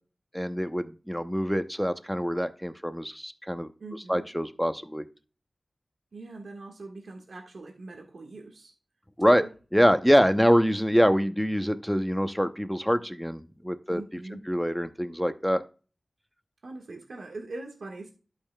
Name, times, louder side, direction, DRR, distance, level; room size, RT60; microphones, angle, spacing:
voice 1, 0.3-3.7 4.1-5.1 9.2-9.4 9.7-14.0 14.3-15.6, equal, ahead, 10 dB, 0.7 m, -25 dB
voice 2, 3.8-4.2 6.1-8.7 9.2-9.5 13.9-14.4 16.6-18.1, right 2 dB, 85° right, 1 dB, 1.5 m, -42 dB
12.0 x 6.6 x 2.3 m, 0.35 s
wide cardioid pair, 90°, 0 cm